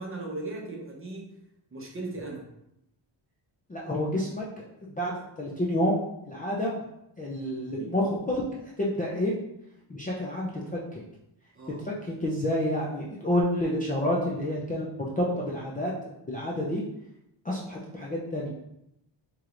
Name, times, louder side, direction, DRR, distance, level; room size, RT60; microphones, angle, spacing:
voice 1, 0.0-1.3 1.7-2.5 11.5-11.8, right 2 dB, 25° right, -2 dB, 0.7 m, -37 dB
voice 2, 3.7-6.0 6.3-6.8 7.2-9.3 9.9-11.0 11.8-16.8 17.4-18.5, left 1 dB, 20° left, -5 dB, 0.4 m, -29 dB
4.7 x 3.0 x 2.4 m, 0.82 s
wide cardioid pair, 150°, 47 cm